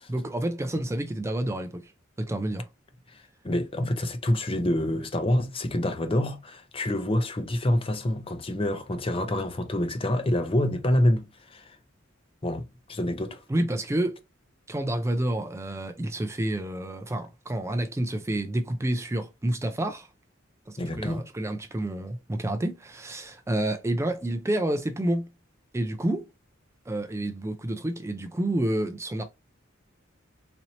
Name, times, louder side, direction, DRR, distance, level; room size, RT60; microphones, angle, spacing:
voice 1, 0.1-1.9 2.2-2.7 13.5-14.3 14.7-20.1 20.7-25.3 25.7-26.3 26.9-29.2, right 1 dB, 15° right, 0.4 m, -29 dB
voice 2, 3.1-11.8 12.4-13.4 20.8-21.2, left 1 dB, 30° left, 0.6 m, -27 dB
4.2 x 2.8 x 2.8 m
head